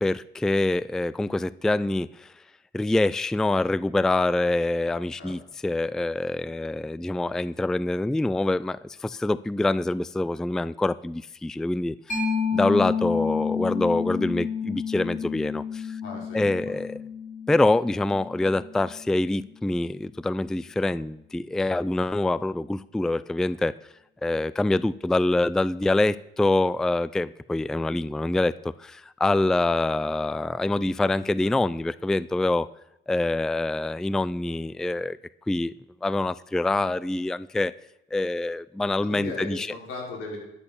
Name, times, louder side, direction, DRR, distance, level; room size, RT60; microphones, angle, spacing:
voice 1, 0.0-2.3 2.7-12.2 12.5-16.0 16.3-17.0 17.5-23.7 24.2-32.7 33.1-35.2 35.5-35.7 36.0-37.7 38.1-39.7, left 2 dB, 5° left, 0.3 m, -25 dB
Mallet percussion, 12.1-19.4, left 6 dB, 40° left, 5.5 m, -30 dB
voice 2, 16.0-16.8 31.4-31.5 39.0-40.4, left 2 dB, 85° left, 4.7 m, -38 dB
12.5 x 6.9 x 7.1 m
cardioid pair, 90°, 20 cm